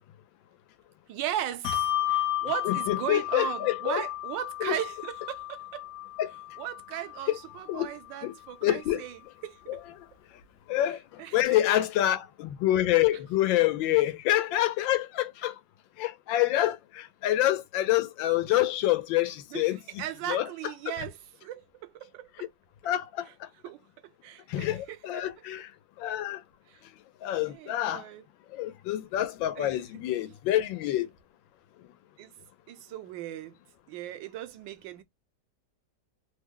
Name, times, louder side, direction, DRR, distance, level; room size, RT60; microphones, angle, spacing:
voice 1, 1.1-5.8 6.6-9.8 10.8-11.6 19.5-22.5 23.2-23.3 23.6-25.3 26.7-26.8 27.5-28.3 29.6-29.8 32.2-32.3 32.7-33.6 33.9-35.0, right 11 dB, 80° right, 1.2 m, -37 dB
Bell, 1.6-8.5, left 13 dB, 65° left, 0.9 m, -33 dB
voice 2, 2.6-4.0 4.6-4.7 6.2-6.3 7.3-7.4 7.7-7.9 8.2-8.3 8.6-9.0 10.7-11.0 11.3-15.5 16.0-19.8 20.3-20.5 22.8-23.3 24.5-25.7 26.0-26.4 27.2-28.0 28.5-31.1, left 14 dB, 90° left, 1.4 m, -27 dB
3.2 x 2.1 x 3.5 m
omnidirectional pair, 2.0 m